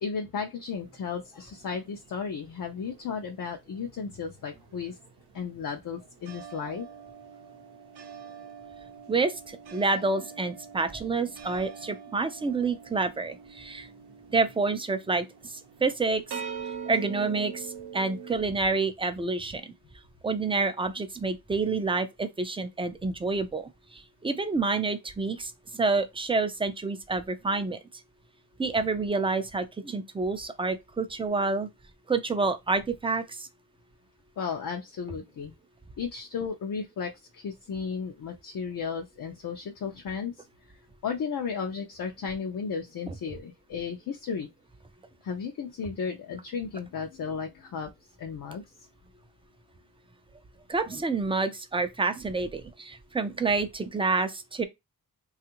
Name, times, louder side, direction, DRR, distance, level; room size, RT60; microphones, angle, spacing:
voice 1, 0.0-5.0 5.3-6.9 34.4-35.5 36.0-40.5 41.0-44.5 45.2-47.9 48.2-48.9, left 6 dB, 55° left, 0.5 m, -34 dB
sound 1, 0.7-3.4 3.7-18.4, right 6 dB, 85° right, 0.6 m, -44 dB
voice 2, 9.1-13.9 14.3-16.4 16.9-19.7 20.2-27.8 28.6-31.7 32.1-33.5 43.1-43.2 50.7-54.6, right 3 dB, 15° right, 0.4 m, -28 dB
3.3 x 2.4 x 2.9 m
wide cardioid pair, 115°, 38 cm